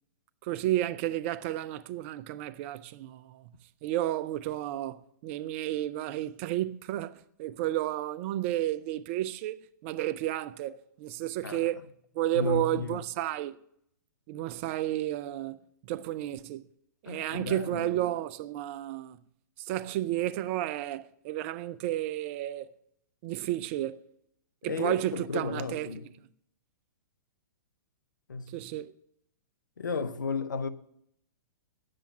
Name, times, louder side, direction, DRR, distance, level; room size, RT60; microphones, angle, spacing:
voice 1, 0.4-3.5 3.8-11.8 12.1-13.6 14.3-16.6 17.0-19.2 19.6-22.7 23.2-24.0 24.6-25.9 28.5-28.9, right 14 dB, 40° right, 0.5 m, -32 dB
voice 2, 12.3-13.0 17.1-17.9 24.7-26.1 28.3-28.6 29.8-30.7, left 4 dB, 80° left, 0.8 m, -34 dB
10.5 x 7.7 x 7.3 m
hypercardioid pair, 115°, 10 cm